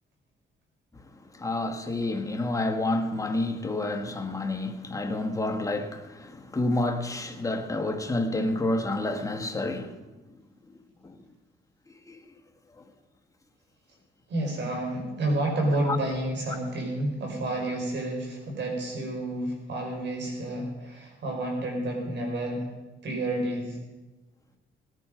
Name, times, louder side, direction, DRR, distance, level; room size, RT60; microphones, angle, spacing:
voice 1, 1.3-10.0 11.0-11.2 12.1-12.2 15.8-16.0, left 2 dB, 15° left, 1.6 m, -29 dB
voice 2, 14.3-22.7 23.0-23.8, right 1 dB, 65° right, 5.0 m, -30 dB
18.0 x 11.0 x 5.1 m
cardioid pair, 90°, 20 cm